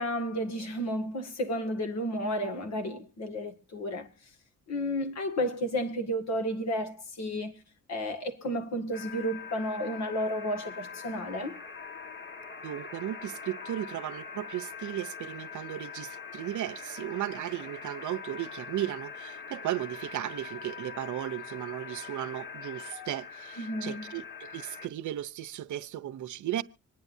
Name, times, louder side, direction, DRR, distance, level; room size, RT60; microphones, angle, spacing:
voice 1, 0.0-4.1 4.7-7.6 7.9-11.6 23.6-24.1, equal, 60° left, 2.1 m, -32 dB
sound 1, 8.9-24.9, left 6 dB, 40° left, 1.6 m, -43 dB
voice 2, 12.6-26.6, right 13 dB, 70° right, 0.8 m, -35 dB
25.5 x 9.5 x 2.7 m
cardioid pair, 110°, 31 cm